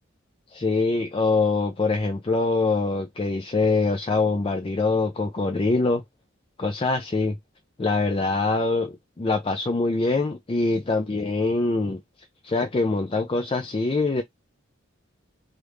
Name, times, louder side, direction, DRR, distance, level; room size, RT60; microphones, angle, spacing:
voice 1, 0.5-6.0 6.6-7.4 7.8-12.0 12.4-14.2, left 3 dB, 25° left, 0.4 m, -24 dB
3.4 x 2.5 x 3.1 m
head